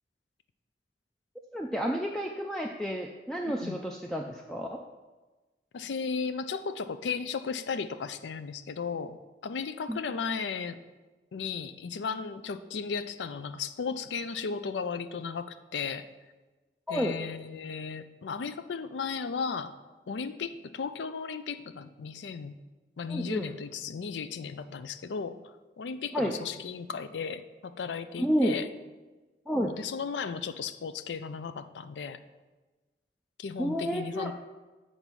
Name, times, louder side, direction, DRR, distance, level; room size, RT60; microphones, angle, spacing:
voice 1, 1.5-4.8 9.9-10.0 16.9-17.2 23.1-23.5 26.1-26.4 28.2-28.6 29.5-29.7 33.6-34.3, equal, 5° left, 1 dB, 0.3 m, -30 dB
voice 2, 5.7-10.8 11.3-16.1 16.9-19.7 20.1-22.6 23.0-25.4 25.8-28.7 29.5-32.2 33.4-34.3, left 5 dB, 85° left, 12 dB, 0.4 m, -35 dB
7.3 x 4.0 x 6.1 m, 1.2 s
head